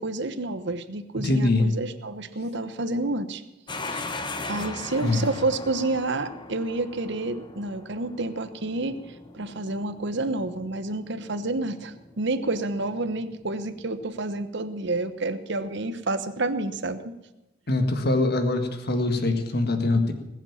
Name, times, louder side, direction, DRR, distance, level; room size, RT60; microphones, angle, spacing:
voice 1, 0.0-3.4 3.9-4.1 4.5-9.0 9.3-17.0, right 2 dB, 65° right, 10 dB, 1.1 m, -29 dB
voice 2, 1.2-1.7 5.0-5.3 17.7-20.1, left 2 dB, 55° left, 7 dB, 1.8 m, -23 dB
sound 1, 3.7-14.4, left 2 dB, 25° left, 1.0 m, -40 dB
20.0 x 7.5 x 7.2 m, 0.98 s
head